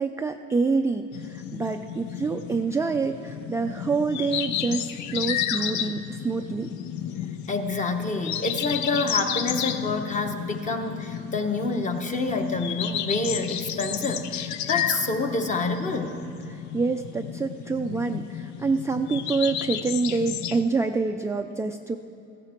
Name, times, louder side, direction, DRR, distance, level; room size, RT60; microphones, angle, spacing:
voice 1, 0.0-6.7 16.5-22.0, right 4 dB, 10° right, 5 dB, 0.3 m, -27 dB
sound 1, 1.1-20.6, left 10 dB, 75° left, 0.6 m, -32 dB
voice 2, 7.5-16.3, left 3 dB, 25° left, 5 dB, 1.1 m, -28 dB
16.5 x 15.0 x 4.5 m, 2.9 s
cardioid pair, 130°, 29 cm